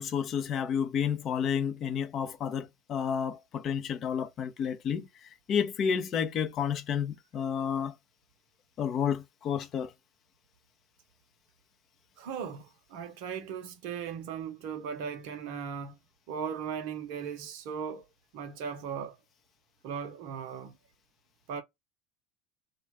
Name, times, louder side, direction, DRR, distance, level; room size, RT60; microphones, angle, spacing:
voice 1, 0.0-7.9 8.8-9.9, left 7 dB, 45° left, 0.5 m, -31 dB
voice 2, 12.2-16.0 16.3-18.0 18.3-19.2 19.8-20.8 21.5-21.6, right 7 dB, 60° right, 0.6 m, -37 dB
2.4 x 2.2 x 3.0 m
hypercardioid pair, 75°, 0 cm